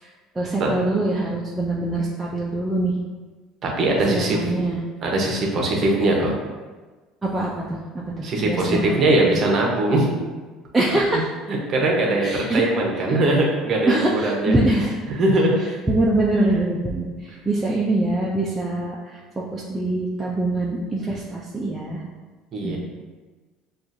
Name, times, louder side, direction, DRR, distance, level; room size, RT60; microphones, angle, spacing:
voice 1, 0.4-2.9 4.1-4.8 7.2-9.4 10.7-11.3 12.2-12.6 13.9-15.0 15.9-22.0 22.6-22.8, right 2 dB, 10° right, -5 dB, 0.3 m, -24 dB
voice 2, 3.6-4.4 5.0-6.3 8.2-10.1 11.5-14.5 15.1-15.6 22.5-22.8, right 2 dB, 35° right, -1 dB, 0.7 m, -21 dB
6.0 x 2.4 x 2.6 m, 1.3 s
cardioid pair, 170°, 0 cm